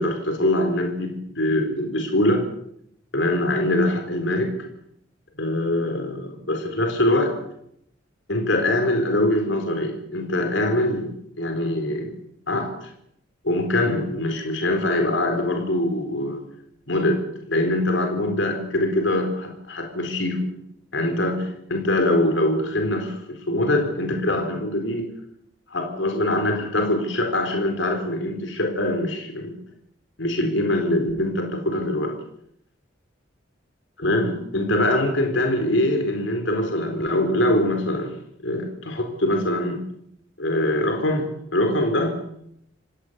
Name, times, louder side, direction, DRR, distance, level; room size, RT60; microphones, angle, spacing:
voice 1, 0.0-2.4 3.1-4.5 5.4-7.4 8.3-11.1 11.4-12.1 12.5-12.9 13.4-16.4 16.9-17.2 17.5-20.5 20.9-25.1 25.7-29.6 30.2-32.2 34.0-38.1 38.4-39.8 40.4-42.1, left 1 dB, 70° left, 5 dB, 4.1 m, -23 dB
27.5 x 17.5 x 8.1 m, 0.73 s
head